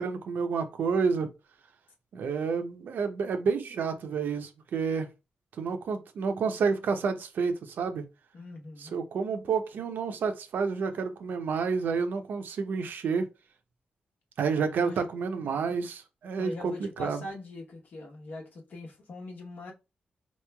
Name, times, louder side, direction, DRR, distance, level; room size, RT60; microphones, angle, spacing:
voice 1, 0.0-1.3 2.1-5.1 5.6-8.0 8.8-13.3 14.4-17.2, right 5 dB, 80° right, 0.6 m, -29 dB
voice 2, 8.3-8.9 14.8-15.0 16.4-19.7, left 2 dB, 65° left, 1.0 m, -41 dB
4.4 x 3.0 x 2.2 m
wide cardioid pair, 125°, 3 cm